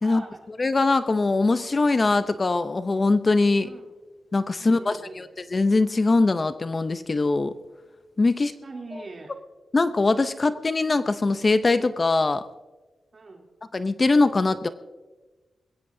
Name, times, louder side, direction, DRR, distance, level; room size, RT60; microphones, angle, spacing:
voice 1, 0.0-0.4 3.6-3.9 4.6-5.2 8.3-9.3 13.1-13.4, right 3 dB, 40° right, 0 dB, 3.0 m, -42 dB
voice 2, 0.6-3.7 4.3-7.5 8.2-8.5 9.7-12.4 13.7-14.7, left 3 dB, 35° left, 11 dB, 0.6 m, -22 dB
21.0 x 16.5 x 2.7 m, 1.2 s
wide cardioid pair, 100°, 0 cm